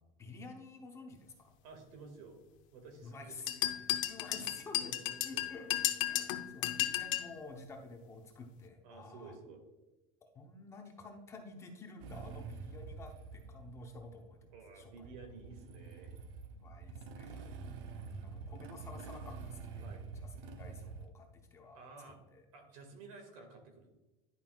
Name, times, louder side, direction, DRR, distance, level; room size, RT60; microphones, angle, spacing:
voice 1, 0.0-1.5 3.0-5.0 5.2-9.4 10.2-14.4 14.7-15.1 16.5-19.9 20.1-21.8 22.1-22.4, left 3 dB, 15° left, 3 dB, 0.7 m, -51 dB
voice 2, 1.6-2.4 2.7-3.4 4.3-4.4 4.7-5.8 8.8-9.6 14.5-16.2 19.8-20.1 21.7-22.2 22.5-23.9, right 4 dB, 80° right, 4 dB, 2.0 m, -53 dB
sound 1, 3.5-7.3, left 14 dB, 70° left, 0.8 m, -34 dB
Motorcycle / Engine starting, 12.0-21.1, right 5 dB, 60° right, 0.7 m, -47 dB
10.5 x 5.5 x 2.3 m, 1.1 s
cardioid pair, 170°, 17 cm